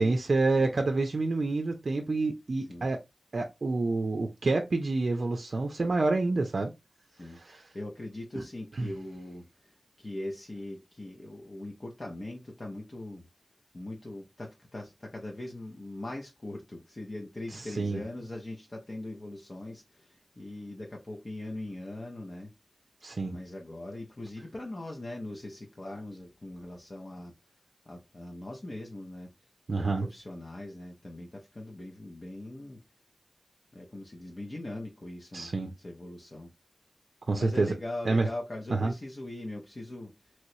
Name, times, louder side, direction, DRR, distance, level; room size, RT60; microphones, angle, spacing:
voice 1, 0.0-3.0 3.3-6.7 7.3-7.6 8.4-8.5 8.8-8.9 17.5-18.0 23.0-23.4 29.7-30.1 35.3-35.7 37.3-37.7 38.1-38.3 38.7-38.9, right 3 dB, 70° right, 0.4 m, -28 dB
voice 2, 7.1-13.2 13.7-22.5 23.3-27.3 27.9-29.3 29.8-32.8 33.7-35.5 35.8-36.5 37.4-40.3, left 1 dB, 50° left, 0.7 m, -41 dB
3.0 x 3.0 x 2.6 m
wide cardioid pair, 55°, 0 cm